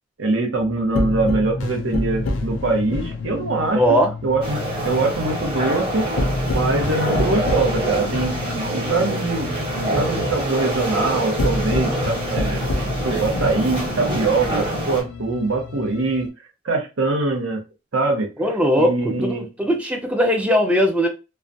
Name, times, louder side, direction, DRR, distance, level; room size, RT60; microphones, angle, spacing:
voice 1, 0.2-6.1 6.5-12.6 13.0-16.3 16.6-17.6 17.9-18.3 18.8-19.4, right 3 dB, 85° right, 0.8 m, -23 dB
sound 1, 0.6-16.3, left 2 dB, 70° left, 0.4 m, -29 dB
voice 2, 3.7-4.1 18.4-19.3 19.6-21.1, equal, 5° right, 0.3 m, -19 dB
sound 2, 4.4-15.0, right 1 dB, 25° right, 0.9 m, -26 dB
2.3 x 2.1 x 2.6 m
head